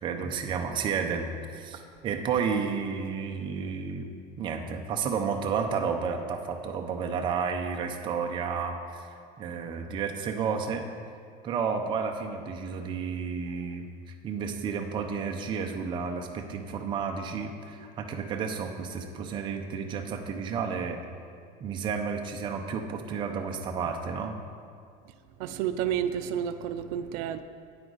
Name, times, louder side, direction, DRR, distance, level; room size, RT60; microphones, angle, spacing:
voice 1, 0.0-4.1 4.4-9.1 9.4-10.9 11.4-13.9 14.2-21.0 21.6-24.4, right 6 dB, 25° right, 3 dB, 0.5 m, -31 dB
voice 2, 25.4-27.4, right 9 dB, 85° right, 10 dB, 0.5 m, -30 dB
9.6 x 8.9 x 4.0 m, 2.2 s
cardioid pair, 180°, 20 cm